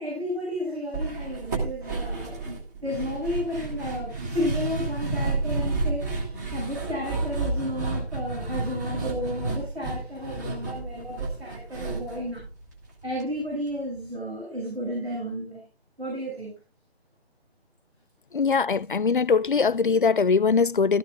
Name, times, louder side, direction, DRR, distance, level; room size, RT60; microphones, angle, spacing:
voice 1, 0.0-12.4 13.0-15.6 16.0-16.5, equal, 75° right, 7.2 m, -32 dB
sound 1, 0.9-13.2 13.5-13.6 13.9-14.1, right 3 dB, 15° right, 1.8 m, -31 dB
voice 2, 18.3-21.0, left 5 dB, 55° left, 0.5 m, -21 dB
15.5 x 13.5 x 2.4 m
figure-of-eight pair, 155°, 32 cm